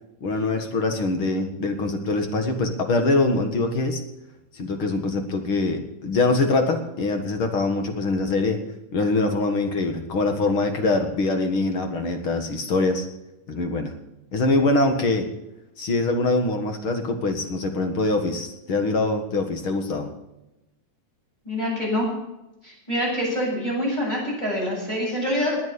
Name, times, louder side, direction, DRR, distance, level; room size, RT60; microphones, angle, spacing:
voice 1, 0.2-4.0 4.5-8.6 8.9-13.1 13.5-13.9 14.3-15.3 15.8-20.1, left 2 dB, 50° left, 6 dB, 2.2 m, -23 dB
voice 2, 21.4-22.0 22.6-25.6, left 1 dB, 15° left, -4 dB, 8.2 m, -25 dB
20.5 x 8.6 x 6.8 m, 0.94 s
omnidirectional pair, 3.3 m